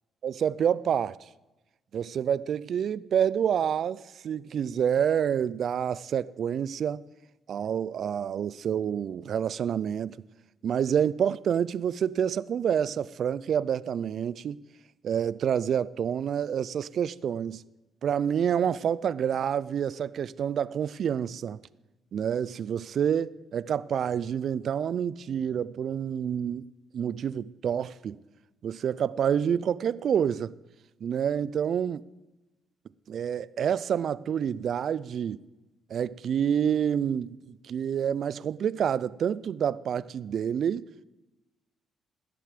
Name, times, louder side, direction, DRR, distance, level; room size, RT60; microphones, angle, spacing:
voice 1, 0.2-1.2 1.9-7.0 7.5-10.2 10.6-14.6 15.0-17.6 18.0-21.6 22.1-26.7 26.9-28.2 28.6-30.5 31.0-32.0 33.1-35.4 35.9-40.9, right 8 dB, 60° right, 0.3 m, -28 dB
16.0 x 6.8 x 5.1 m
cardioid pair, 90°, 0 cm